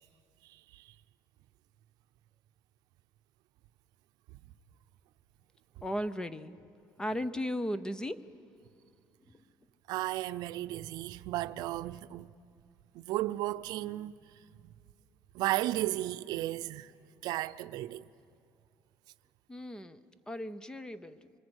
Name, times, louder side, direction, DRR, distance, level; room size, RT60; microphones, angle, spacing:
voice 1, 0.5-0.9 9.9-12.3 12.9-14.1 14.6-14.7 15.3-16.9 17.2-18.1, right 15 dB, 80° right, 0.6 m, -34 dB
voice 2, 5.8-6.6 7.0-8.2 19.5-20.0 20.3-21.3, equal, 10° left, 0.7 m, -36 dB
26.5 x 23.5 x 8.0 m
cardioid pair, 150°, 7 cm